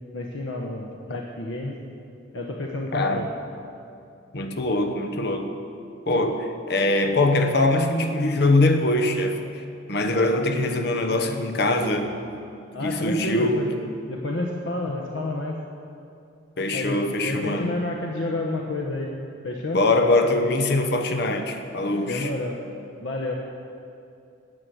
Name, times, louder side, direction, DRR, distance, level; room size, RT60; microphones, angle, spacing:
voice 1, 0.1-1.7 2.3-3.3 12.7-13.7 14.1-15.6 16.7-19.1 19.4-19.8 22.0-22.6 23.0-23.3, left 2 dB, 85° left, 0 dB, 1.1 m, -30 dB
voice 2, 2.9-3.3 4.3-5.5 6.1-9.6 9.9-12.2 12.8-13.7 14.9-15.0 16.6-17.7 19.7-22.3, left 2 dB, 60° left, 6 dB, 1.0 m, -23 dB
12.5 x 8.5 x 7.9 m, 2.6 s
head